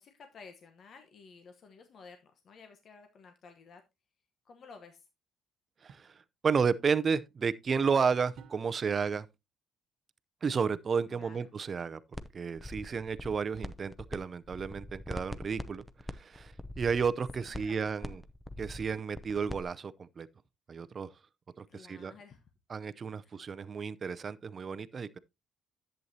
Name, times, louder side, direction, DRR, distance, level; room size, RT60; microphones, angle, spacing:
voice 1, 0.0-3.8 4.4-5.1 11.1-11.4 17.4-18.2 21.7-22.4 23.2-23.4, left 5 dB, 50° left, 1.1 m, -54 dB
voice 2, 5.8-9.3 10.4-12.0 12.3-15.8 16.1-18.2 18.6-20.3 20.7-21.1 21.6-22.1 22.7-25.2, right 5 dB, 35° right, 0.5 m, -32 dB
sound 1, 5.9-6.2 8.4-9.0 10.6-10.9 13.0-13.5, right 7 dB, 70° right, 0.9 m, -55 dB
sound 2, 12.1-12.3 12.6-14.2 14.4-19.6, left 1 dB, 5° left, 0.6 m, -42 dB
11.0 x 8.0 x 2.8 m
cardioid pair, 125°, 0 cm